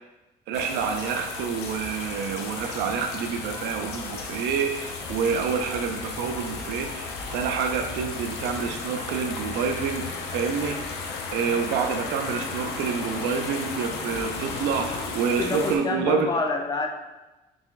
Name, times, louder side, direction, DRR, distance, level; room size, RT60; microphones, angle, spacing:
sound 1, 0.5-15.8, left 4 dB, 75° left, 0.6 m, -34 dB
voice 1, 0.5-10.8 11.3-16.3, right 6 dB, 85° right, 5 dB, 0.4 m, -28 dB
voice 2, 15.4-16.9, left 3 dB, 25° left, 3 dB, 0.5 m, -27 dB
3.9 x 3.9 x 2.4 m, 1.1 s
cardioid pair, 110°, 17 cm